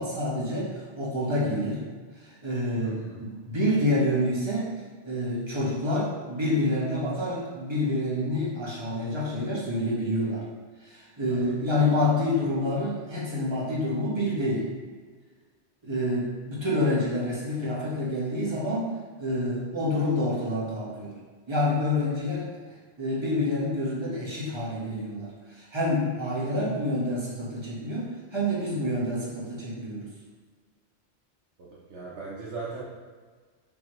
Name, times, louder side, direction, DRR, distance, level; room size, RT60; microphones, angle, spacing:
voice 1, 0.0-1.8 2.2-4.7 5.0-10.4 10.8-14.7 15.8-18.9 19.2-21.2 21.5-22.5 23.0-30.1, left 1 dB, 25° right, -7 dB, 1.2 m, -28 dB
voice 2, 2.8-3.2 11.3-11.6 31.6-32.8, right 4 dB, 70° right, -7 dB, 1.0 m, -39 dB
5.3 x 3.0 x 3.0 m, 1.5 s
omnidirectional pair, 1.2 m